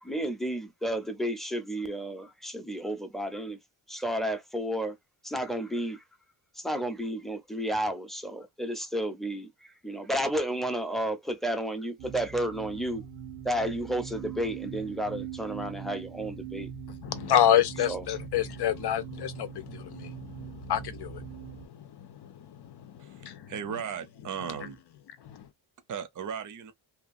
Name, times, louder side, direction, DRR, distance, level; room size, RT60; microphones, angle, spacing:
voice 1, 0.0-3.6 3.9-5.0 5.2-6.0 6.6-9.5 9.8-13.0 13.4-16.7 17.9-18.0, right 1 dB, ahead, 0.6 m, -32 dB
sound 1, 12.0-21.7, right 8 dB, 90° right, 0.9 m, -42 dB
voice 2, 17.0-21.2 22.2-22.3 22.8-23.5 25.2-25.4, left 10 dB, 60° left, 0.6 m, -28 dB
voice 3, 23.0-24.8 25.9-26.7, right 7 dB, 45° right, 0.6 m, -37 dB
2.8 x 2.3 x 2.5 m
cardioid pair, 95°, 44 cm